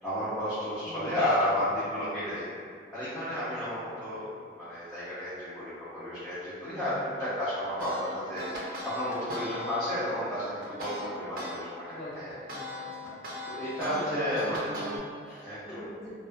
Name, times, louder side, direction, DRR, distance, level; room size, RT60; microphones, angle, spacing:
voice 1, 0.0-2.4 2.9-11.8 12.1-12.3 13.5-14.7 15.3-15.8, left 1 dB, 5° left, -15 dB, 0.5 m, -32 dB
voice 2, 0.9-1.3 3.9-4.0 6.7-7.0 11.9-13.1 13.9-16.1, equal, 75° left, -7 dB, 0.7 m, -44 dB
sound 1, 7.8-11.5 11.9-15.0, equal, 50° right, 0.5 m, -38 dB
2.3 x 2.1 x 2.5 m, 2.2 s
head